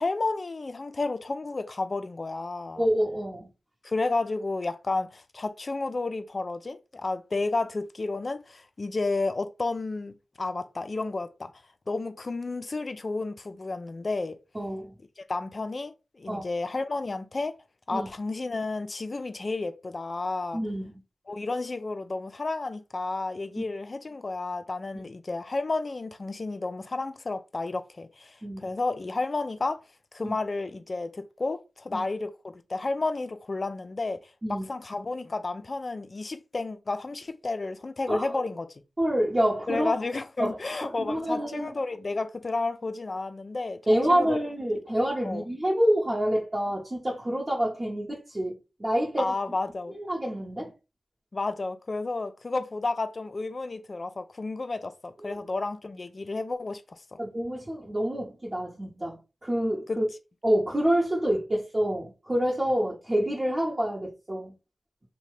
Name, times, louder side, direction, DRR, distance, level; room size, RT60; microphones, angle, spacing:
voice 1, 0.0-2.8 3.8-11.5 11.9-14.4 15.2-17.5 17.9-20.6 21.3-29.8 30.1-34.2 34.5-38.7 39.7-43.8 44.1-44.4 45.2-45.4 49.2-49.9 51.3-57.2 59.9-60.0, left 3 dB, 50° left, 0.4 m, -31 dB
voice 2, 2.8-3.5 14.5-14.9 16.3-16.4 17.9-18.1 20.5-20.9 23.6-23.7 28.4-28.7 30.2-30.4 31.9-32.0 34.4-34.7 38.1-38.4 39.0-39.9 40.4-40.5 40.8-41.7 43.9-48.5 48.8-49.3 49.9-50.7 55.2-55.4 57.2-60.1 60.4-64.5, equal, 35° right, 0.8 m, -27 dB
2.7 x 2.1 x 3.1 m
cardioid pair, 45°, 0 cm